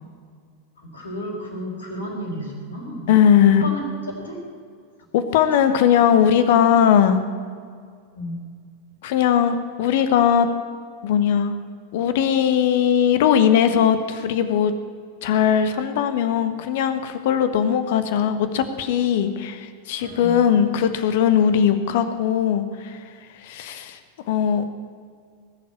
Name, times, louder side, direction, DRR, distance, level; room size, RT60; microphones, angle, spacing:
voice 1, 0.9-3.1 3.4-3.8 4.2-4.4 8.1-8.4 20.0-20.4, left 1 dB, 70° left, 0 dB, 4.8 m, -32 dB
voice 2, 3.1-3.7 5.1-7.2 9.0-10.5 11.0-11.5 11.9-14.7 15.2-23.0 23.4-24.0 24.3-24.6, left 8 dB, 50° left, 10 dB, 1.3 m, -19 dB
19.5 x 7.4 x 9.9 m, 2.1 s
figure-of-eight pair, 90°, 0 cm